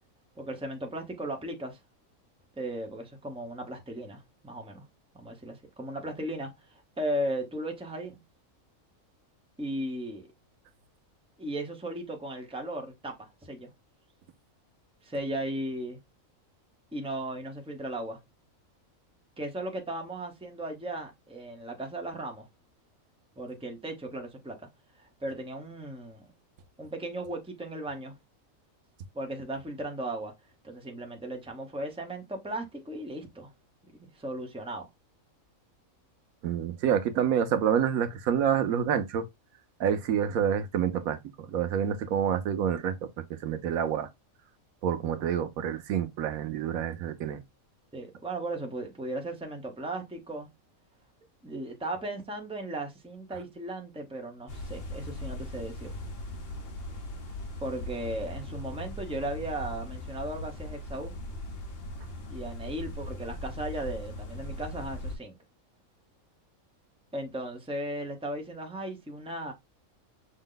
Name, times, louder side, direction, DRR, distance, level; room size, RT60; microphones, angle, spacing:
voice 1, 0.4-1.8 2.6-4.8 5.1-8.2 9.6-10.3 11.4-13.7 15.0-16.0 16.9-18.2 19.4-22.5 23.4-24.7 25.0-26.3 26.8-28.2 29.1-30.3 30.6-33.5 33.9-34.9 47.9-50.5 51.4-55.9 57.6-61.1 62.3-65.3 67.1-69.5, right 1 dB, 5° right, 0.8 m, -36 dB
voice 2, 36.4-39.2 39.8-44.1 44.8-47.4, right 8 dB, 90° right, 1.2 m, -28 dB
sound 1, 54.5-65.2, left 1 dB, 50° left, 1.0 m, -39 dB
6.1 x 2.1 x 3.8 m
omnidirectional pair, 1.4 m